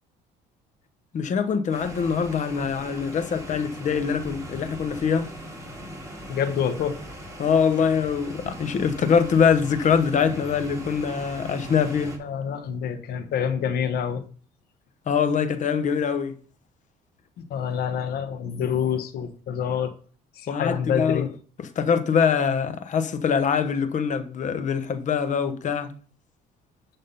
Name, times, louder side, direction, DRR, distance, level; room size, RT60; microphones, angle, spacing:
voice 1, 1.1-5.3 7.4-12.1 15.1-16.3 20.5-21.3 21.6-25.9, left 6 dB, 45° left, 1.0 m, -23 dB
sound 1, 1.7-12.2, equal, 20° right, 2.7 m, -40 dB
voice 2, 6.3-7.0 12.2-14.2 17.5-19.9 20.4-21.3, left 8 dB, 65° left, 1.1 m, -27 dB
11.0 x 3.7 x 5.4 m
cardioid pair, 110°, 17 cm